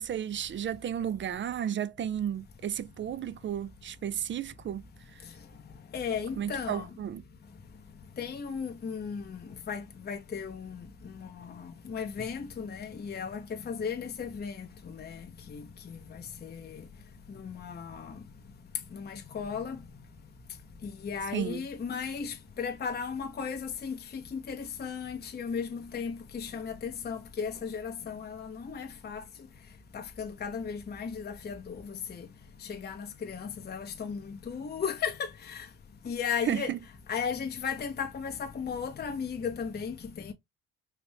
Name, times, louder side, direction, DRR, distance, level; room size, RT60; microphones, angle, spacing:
voice 1, 0.0-4.9 5.1-5.2 6.4-7.2 21.3-21.7 36.5-36.8, right 9 dB, 30° right, 0.4 m, -33 dB
voice 2, 5.9-6.9 8.2-10.8 11.5-15.2 15.5-15.6 16.4-16.8 17.4-18.1 18.9-19.8 20.8-24.0 24.3-29.2 29.9-32.2 32.7-35.7 36.1-36.7 37.1-40.3, left 6 dB, 25° left, 0.7 m, -36 dB
3.3 x 2.5 x 3.2 m
supercardioid pair, 65°, 40 cm